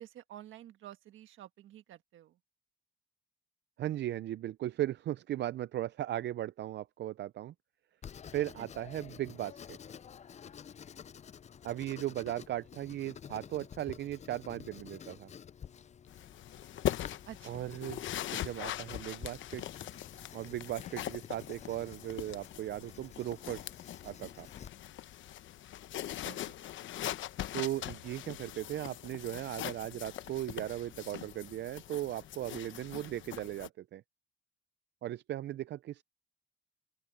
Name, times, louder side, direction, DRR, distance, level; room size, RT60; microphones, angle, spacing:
voice 1, 0.0-2.4 8.6-8.7 17.3-17.8 26.1-26.6, right 12 dB, 80° right, 1.5 m, -51 dB
voice 2, 3.8-7.5 8.3-9.8 11.6-15.3 17.5-18.0 18.3-19.6 20.3-23.7 24.0-24.5 27.5-34.0 35.0-36.0, right 13 dB, 60° right, 0.5 m, -37 dB
Writing, 8.0-24.7, left 8 dB, 35° left, 0.5 m, -50 dB
sound 1, 16.1-33.7, left 12 dB, 75° left, 1.0 m, -42 dB
open air
cardioid pair, 90°, 20 cm